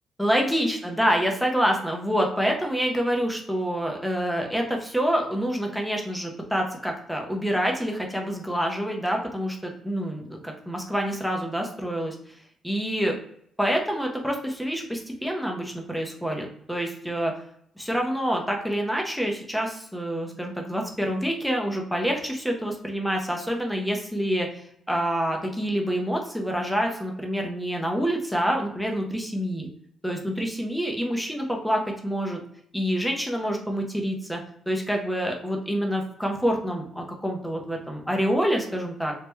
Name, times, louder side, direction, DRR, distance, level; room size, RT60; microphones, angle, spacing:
voice 1, 0.2-12.2 12.6-13.2 13.6-17.3 17.8-29.7 30.0-32.4 32.7-34.4 34.7-39.1, equal, ahead, 1 dB, 0.5 m, -27 dB
3.0 x 2.1 x 3.3 m, 0.69 s
cardioid pair, 160°, 0 cm